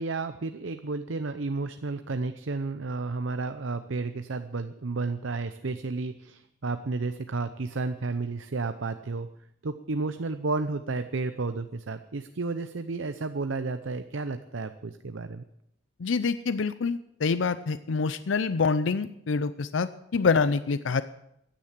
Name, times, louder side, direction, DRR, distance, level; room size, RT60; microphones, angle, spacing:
voice 1, 0.0-9.3 9.6-15.4, right 3 dB, 90° right, 9 dB, 0.7 m, -32 dB
voice 2, 16.0-21.0, left 4 dB, 85° left, 13 dB, 0.5 m, -26 dB
15.5 x 10.5 x 7.5 m, 0.78 s
head